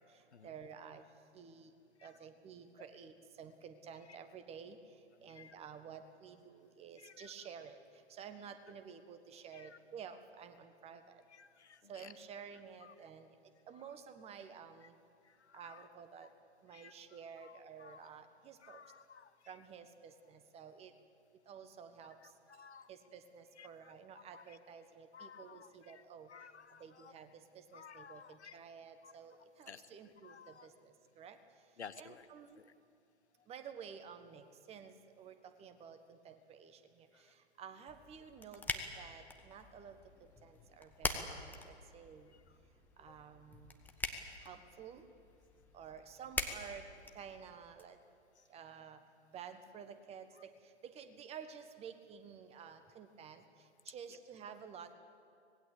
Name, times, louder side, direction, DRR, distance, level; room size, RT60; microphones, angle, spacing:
voice 1, 0.4-1.0 1.3-1.7 2.0-3.1 3.4-4.8 5.2-7.8 8.1-11.2 11.9-13.3 13.7-14.9 15.5-16.3 16.6-18.8 19.5-20.9 21.5-22.2 22.9-26.3 26.8-27.3 27.7-30.5 30.8-31.4 32.0-32.6 33.5-36.8 37.6-40.0 40.4-42.3 43.0-43.7 44.4-45.0 45.7-46.8 47.1-48.0 48.5-49.0 49.3-50.3 50.8-53.4 53.9-54.9, right 7 dB, 20° right, 8 dB, 1.4 m, -52 dB
voice 2, 5.2-5.5 7.0-7.3 9.5-9.8 11.3-12.1 12.8-12.9 13.7-14.0 14.8-14.9 15.2-15.9 16.2-16.3 16.7-18.1 18.6-19.6 22.2-22.9 23.6-24.6 25.1-27.2 27.7-28.6 29.0-29.1 29.7-30.8 31.8-32.3 32.6-32.7 37.1-37.3 39.6-39.7 42.3-42.6 43.1-43.2 48.3-48.5 50.3-50.4 54.1-54.2, left 6 dB, 75° left, 13 dB, 1.3 m, -56 dB
sound 1, 37.9-47.8, left 3 dB, 5° left, 1.4 m, -44 dB
25.0 x 19.5 x 8.4 m, 2.5 s
figure-of-eight pair, 120°, 34 cm